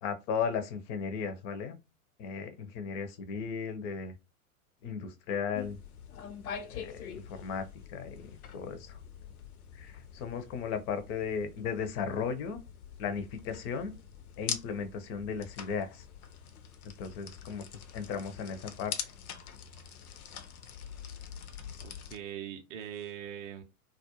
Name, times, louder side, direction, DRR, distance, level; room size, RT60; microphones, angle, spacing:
voice 1, 0.0-1.8 2.2-4.2 4.8-5.8 6.7-9.0 9.7-12.6 13.0-13.9 14.4-16.1 16.8-19.1, left 6 dB, 30° left, 0.4 m, -36 dB
sound 1, 5.5-22.2, left 8 dB, 75° left, 0.6 m, -44 dB
voice 2, 21.8-23.6, right 10 dB, 30° right, 0.4 m, -41 dB
2.3 x 2.1 x 2.8 m
figure-of-eight pair, 95°, 44 cm